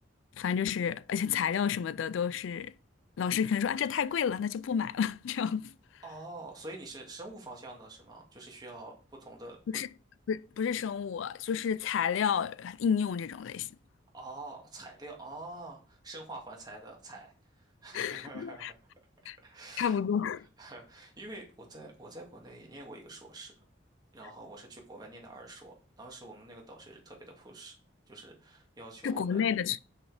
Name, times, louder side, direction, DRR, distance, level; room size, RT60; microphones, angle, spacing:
voice 1, 0.4-2.7 3.2-5.7 9.7-9.9 10.3-13.7 17.9-18.7 19.3-19.4 19.8-20.4 29.0-29.8, left 7 dB, 80° left, 0.3 m, -30 dB
voice 2, 6.0-9.8 14.1-18.8 19.4-20.0 20.6-23.5 24.1-27.7 28.1-29.5, right 2 dB, 20° right, 2.2 m, -46 dB
7.5 x 5.8 x 4.9 m
head